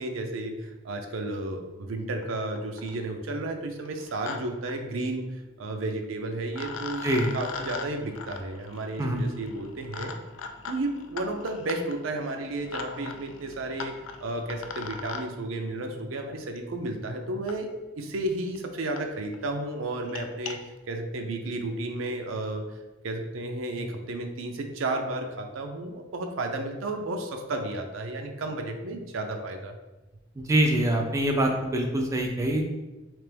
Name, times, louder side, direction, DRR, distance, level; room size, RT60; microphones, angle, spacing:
voice 1, 0.0-5.2 5.6-7.0 7.3-10.1 10.7-13.9 14.2-17.7 18.0-22.6 23.0-29.7, right 2 dB, 80° right, 4 dB, 0.5 m, -32 dB
sound 1, 2.2-2.3 2.6-3.0 3.8-4.4 4.6-4.7 6.0-6.1 6.5-15.2 16.6-16.7 17.5-17.6 18.2-18.3 18.5-18.6 19.0-19.1 19.3-19.5 19.9-20.5, left 5 dB, 70° left, 0.4 m, -40 dB
voice 2, 30.4-32.8, right 1 dB, 15° right, 1 dB, 0.4 m, -24 dB
3.3 x 2.9 x 3.3 m, 1.1 s
head